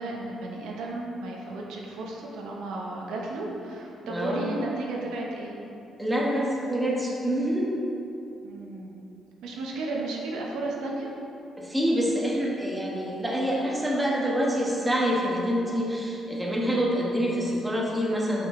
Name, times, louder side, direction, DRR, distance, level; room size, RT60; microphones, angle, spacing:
voice 1, 0.0-5.6 8.4-9.0 9.4-11.1, right 2 dB, 90° right, -2 dB, 0.8 m, -34 dB
voice 2, 4.0-4.5 6.0-7.7 11.6-18.5, equal, 10° right, -3 dB, 1.2 m, -26 dB
5.7 x 5.5 x 3.6 m, 2.8 s
cardioid pair, 90°, 0 cm